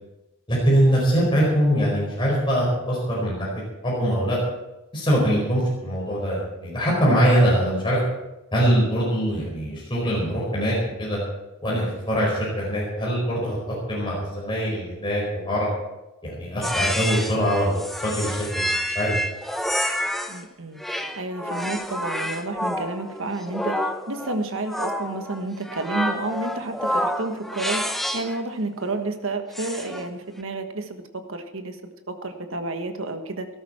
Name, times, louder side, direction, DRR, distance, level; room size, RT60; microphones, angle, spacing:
voice 1, 0.5-4.4 4.9-8.0 8.5-11.2 11.6-15.7 16.2-18.6 18.9-19.2, equal, 20° left, -5 dB, 4.8 m, -23 dB
sound 1, 16.6-20.4 20.8-28.4 29.5-30.1, equal, ahead, 0.8 m, -28 dB
voice 2, 20.3-20.8 21.2-27.8 28.1-33.5, right 2 dB, 65° right, 6 dB, 1.4 m, -30 dB
17.5 x 13.5 x 4.4 m, 0.99 s
head